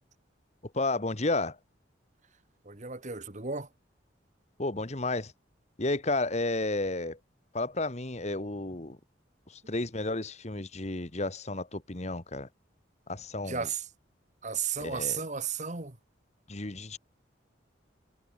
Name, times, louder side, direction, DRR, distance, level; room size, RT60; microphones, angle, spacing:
voice 1, 0.7-1.6 4.6-5.3 5.8-7.2 7.5-9.0 9.7-12.5 13.1-13.7 14.8-15.2 16.5-17.0, left 2 dB, 35° left, 1.6 m, -32 dB
voice 2, 2.6-3.7 13.4-13.9 14.4-16.0, right 6 dB, 40° right, 1.7 m, -34 dB
head